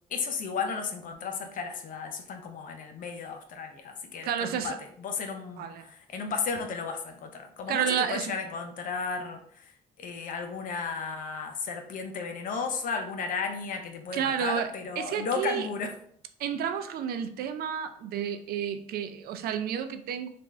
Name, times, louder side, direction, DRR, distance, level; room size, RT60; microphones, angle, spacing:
voice 1, 0.1-9.7 10.0-16.0, left 5 dB, 60° left, 5 dB, 0.6 m, -34 dB
voice 2, 4.2-4.8 5.6-5.9 7.7-8.3 14.1-14.7 15.0-15.7 16.4-20.3, right 8 dB, 75° right, 8 dB, 0.4 m, -30 dB
3.4 x 2.5 x 3.1 m, 0.62 s
cardioid pair, 100°, 16 cm